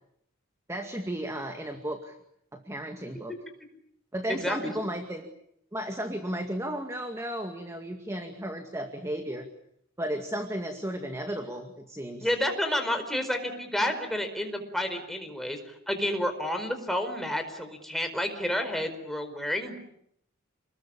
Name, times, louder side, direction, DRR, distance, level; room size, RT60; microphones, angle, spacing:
voice 1, 0.7-2.2 2.5-3.4 4.1-5.3 5.7-9.5 10.0-12.3, right 1 dB, 15° right, 5 dB, 2.1 m, -34 dB
voice 2, 4.3-4.7 12.2-19.8, left 1 dB, ahead, 5 dB, 4.7 m, -30 dB
29.0 x 21.0 x 8.7 m, 0.77 s
head